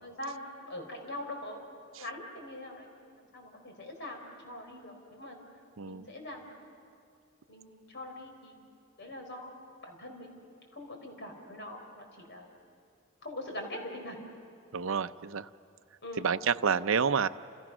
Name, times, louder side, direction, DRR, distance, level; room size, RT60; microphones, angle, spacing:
voice 1, 0.0-1.6 2.0-5.4 5.8-6.6 7.5-10.3 10.7-12.5 13.2-14.2 16.0-16.3, left 1 dB, 55° left, 3 dB, 4.6 m, -43 dB
voice 2, 5.8-6.1 14.7-15.5 16.2-17.3, right 6 dB, 65° right, 11 dB, 0.6 m, -29 dB
30.0 x 28.5 x 6.2 m, 2.4 s
head